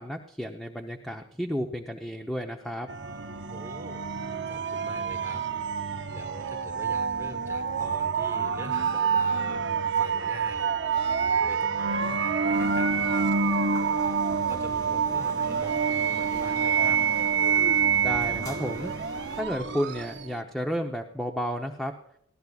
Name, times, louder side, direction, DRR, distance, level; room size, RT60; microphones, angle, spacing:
voice 1, 0.0-2.9 18.0-19.0 19.3-21.9, equal, ahead, 2 dB, 0.8 m, -32 dB
sound 1, 2.9-20.4, right 6 dB, 70° right, 0.8 m, -27 dB
voice 2, 3.5-4.1 4.5-5.4 5.8-9.6 10.0-10.7 11.1-13.3 14.5-17.0, right 1 dB, 15° right, 5 dB, 1.6 m, -44 dB
sound 2, 12.5-19.4, left 1 dB, 20° left, 2.5 m, -45 dB
20.5 x 14.5 x 2.4 m, 0.73 s
head